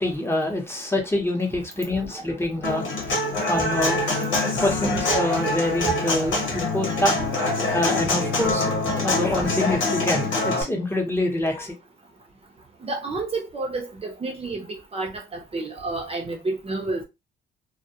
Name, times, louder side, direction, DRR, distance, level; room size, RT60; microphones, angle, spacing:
voice 1, 0.0-7.1 7.7-8.7 9.0-11.7, left 1 dB, 10° left, 0.8 m, -26 dB
Human voice / Acoustic guitar, 2.6-10.6, left 2 dB, 90° left, 1.1 m, -25 dB
voice 2, 12.8-14.6 14.9-15.1 15.5-17.0, right 3 dB, 30° right, 0.6 m, -29 dB
2.2 x 2.1 x 2.7 m
cardioid pair, 90°, 20 cm